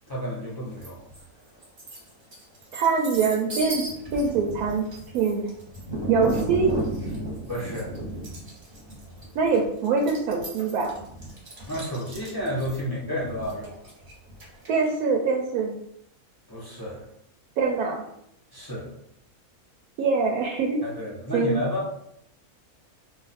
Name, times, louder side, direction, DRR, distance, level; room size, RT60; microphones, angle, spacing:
voice 1, 0.1-1.0 4.1-4.2 7.5-7.9 11.7-13.8 16.5-17.0 18.5-18.9 20.8-21.9, equal, 25° left, -7 dB, 0.5 m, -31 dB
sound 1, 0.8-1.2 1.6-14.9, right 1 dB, 40° right, 0.9 m, -35 dB
voice 2, 2.7-3.8 4.1-4.9 5.1-5.4 6.1-6.7 9.3-11.0 14.7-15.7 17.6-18.0 20.0-20.8 21.3-21.6, right 4 dB, 80° right, 0 dB, 1.0 m, -23 dB
2.4 x 2.4 x 4.0 m, 0.75 s
omnidirectional pair, 1.6 m